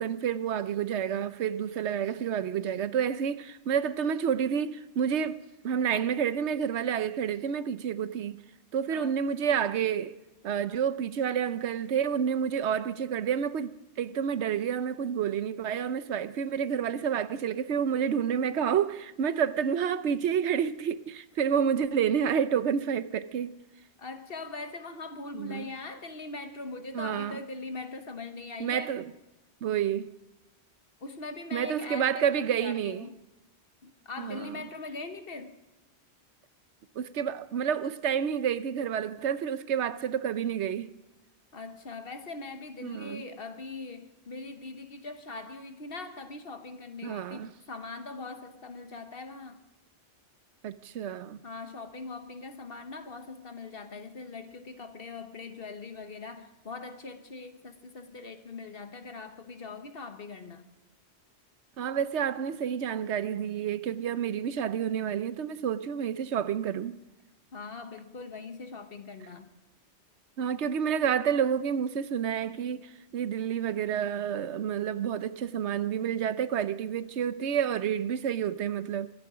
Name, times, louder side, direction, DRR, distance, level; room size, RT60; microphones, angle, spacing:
voice 1, 0.0-8.4 8.7-10.1 10.4-23.5 25.3-25.7 26.9-27.4 28.6-29.1 29.6-30.1 31.5-33.1 34.2-34.6 37.0-40.9 42.8-43.2 47.0-47.5 50.6-51.4 61.8-67.0 70.4-79.1, right 8 dB, 85° right, 1.1 m, -29 dB
voice 2, 8.9-9.2 24.0-29.0 31.0-33.2 33.8-35.5 41.5-49.6 51.4-60.7 67.5-69.5, left 3 dB, 60° left, 1.4 m, -41 dB
24.0 x 10.5 x 5.0 m
omnidirectional pair, 1.1 m